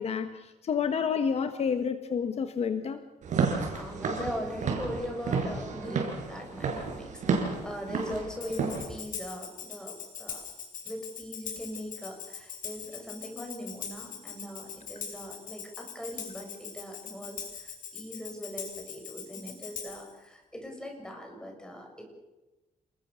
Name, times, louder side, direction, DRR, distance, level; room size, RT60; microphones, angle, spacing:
voice 1, 0.0-3.0, left 6 dB, 50° left, 9 dB, 1.3 m, -29 dB
Walk footsteps / Siren, 3.2-8.8, right 5 dB, 65° right, 6.6 m, -31 dB
voice 2, 3.7-10.5 10.8-22.1, equal, 5° left, 2 dB, 7.2 m, -40 dB
Tambourine, 8.4-20.1, left 7 dB, 80° left, 6.6 m, -41 dB
29.5 x 21.0 x 7.0 m, 1.1 s
cardioid pair, 145°, 13 cm